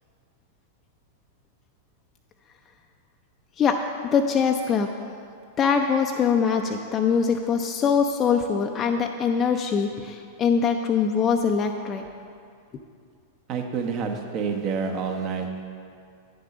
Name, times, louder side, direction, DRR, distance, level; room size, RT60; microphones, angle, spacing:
voice 1, 4.1-4.9 5.6-12.0, left 6 dB, 30° left, 3 dB, 0.5 m, -23 dB
voice 2, 13.5-15.6, right 5 dB, 40° right, 3 dB, 1.0 m, -28 dB
9.5 x 6.6 x 4.9 m, 2.3 s
figure-of-eight pair, 95°, 0 cm